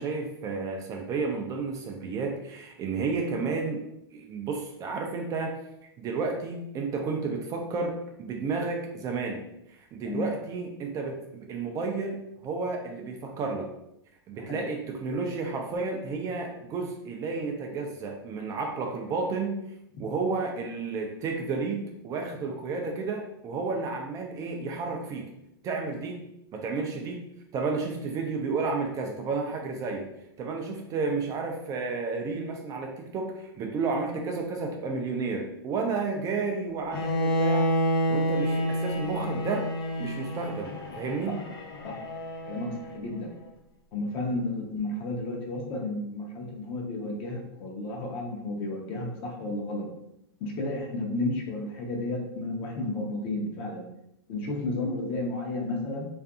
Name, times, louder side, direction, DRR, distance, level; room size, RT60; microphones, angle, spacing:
voice 1, 0.0-3.8 4.1-5.5 6.0-9.4 9.7-13.7 14.3-19.6 20.0-25.3 25.6-26.2 26.5-27.2 27.5-30.1 30.4-37.7 38.1-39.7 40.0-41.4, right 4 dB, 25° right, 2 dB, 0.4 m, -31 dB
Bowed string instrument, 36.9-43.0, equal, 70° left, 0.6 m, -29 dB
voice 2, 42.9-43.3 43.9-49.9 50.4-53.8 54.3-56.1, left 2 dB, 40° left, 0 dB, 0.7 m, -32 dB
2.5 x 2.5 x 2.3 m, 0.80 s
hypercardioid pair, 110°, 13 cm